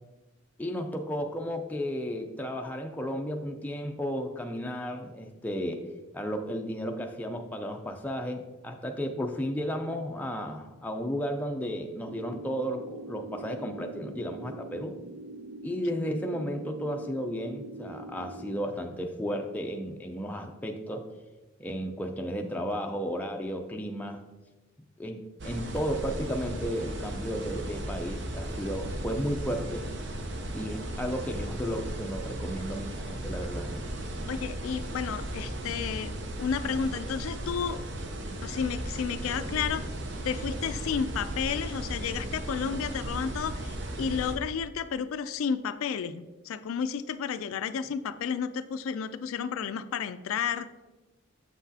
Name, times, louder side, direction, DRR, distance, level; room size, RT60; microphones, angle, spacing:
voice 1, 0.6-5.8 6.1-15.0 15.6-21.0 21.6-24.2 25.0-29.9 30.5-33.7, equal, 10° left, 3 dB, 0.4 m, -33 dB
sound 1, 12.0-18.6, right 2 dB, 75° right, 0.3 m, -44 dB
sound 2, 25.4-44.4, right 1 dB, 55° right, 0.7 m, -36 dB
voice 2, 34.3-36.1 36.4-37.8 38.4-39.9 40.2-50.7, left 6 dB, 85° left, 12 dB, 0.3 m, -32 dB
7.3 x 5.9 x 2.8 m, 1.1 s
head